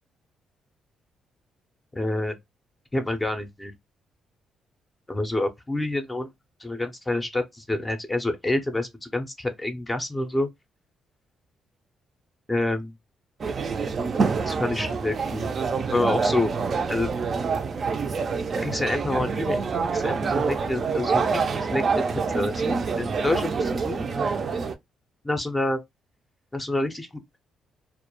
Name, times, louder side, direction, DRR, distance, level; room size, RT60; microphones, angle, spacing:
voice 1, 2.0-2.4 2.9-3.7 5.1-6.3 6.6-10.5 12.5-12.9 14.5-15.5 15.9-16.5 16.9-17.1 18.5-19.7 19.9-21.8 22.1-24.2 25.2-25.8 26.5-27.2, left 2 dB, 15° left, 0.4 m, -27 dB
sound 1, 13.4-24.7, right 5 dB, 45° right, 0.3 m, -26 dB
2.2 x 2.0 x 2.8 m
cardioid pair, 90°, 0 cm